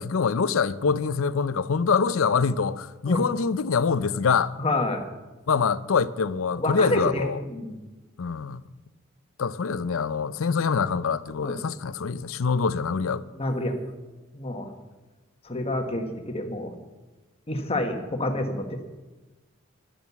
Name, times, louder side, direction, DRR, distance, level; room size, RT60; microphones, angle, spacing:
voice 1, 0.0-4.5 5.5-7.4 8.2-8.6 9.4-13.2, left 5 dB, 85° left, 0.5 m, -25 dB
voice 2, 4.6-5.0 6.5-7.8 11.4-11.5 13.4-13.8 14.3-14.7 15.4-16.7 17.5-18.8, left 1 dB, 30° left, 1.4 m, -28 dB
11.5 x 8.9 x 7.0 m
head